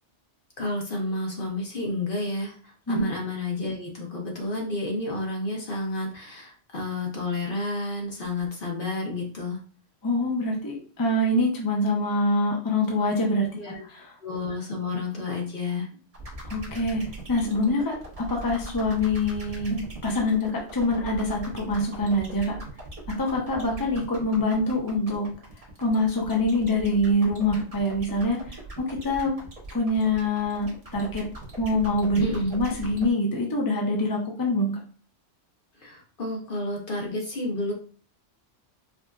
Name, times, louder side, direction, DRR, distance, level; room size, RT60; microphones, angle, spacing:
voice 1, 0.6-9.6 13.5-13.8 14.2-15.9 32.2-32.5 35.8-37.7, left 2 dB, 50° left, -1 dB, 1.0 m, -30 dB
voice 2, 10.0-13.5 13.9-14.1 16.5-17.0 17.3-22.6 23.1-25.3 25.8-28.6 28.9-29.3 29.7-31.2 31.6-32.2 32.5-34.7, left 1 dB, 20° left, -1 dB, 0.7 m, -25 dB
sound 1, 16.1-33.1, right 2 dB, 30° right, 1.1 m, -40 dB
4.8 x 2.5 x 2.3 m, 0.41 s
omnidirectional pair, 1.2 m